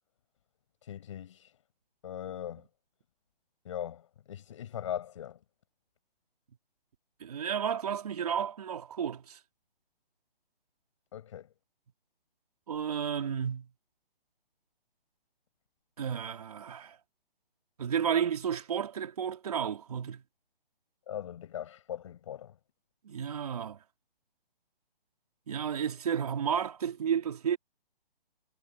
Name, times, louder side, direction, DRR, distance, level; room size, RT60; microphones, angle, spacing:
voice 1, 0.8-1.5 2.0-2.7 3.6-5.4 11.1-11.5 21.1-22.6, left 10 dB, 30° left, 7.0 m, -40 dB
voice 2, 7.2-9.4 12.7-13.7 16.0-17.0 17.8-20.2 23.0-23.8 25.5-27.6, right 8 dB, 40° right, 4.2 m, -32 dB
hypercardioid pair, 175°, 30 cm